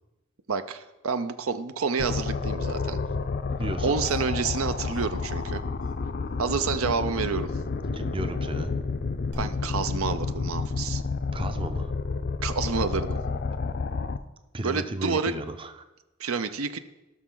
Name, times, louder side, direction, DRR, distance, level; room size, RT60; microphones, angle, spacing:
voice 1, 0.5-3.0 3.8-5.6 6.4-7.5 9.4-11.0 12.4-13.2 14.6-15.3 16.2-16.8, right 5 dB, 85° right, 10 dB, 0.6 m, -29 dB
sound 1, 2.0-14.2, left 4 dB, 50° left, 0.5 m, -30 dB
voice 2, 3.5-4.0 7.9-8.8 11.3-11.9 14.5-15.7 16.2-16.5, right 2 dB, 25° right, 9 dB, 0.5 m, -34 dB
sound 2, 4.0-4.6 4.9-5.0 5.4-5.5 5.8-5.9 9.3-9.4, right 2 dB, 55° right, 3.3 m, -44 dB
17.5 x 6.0 x 3.9 m, 1.0 s
head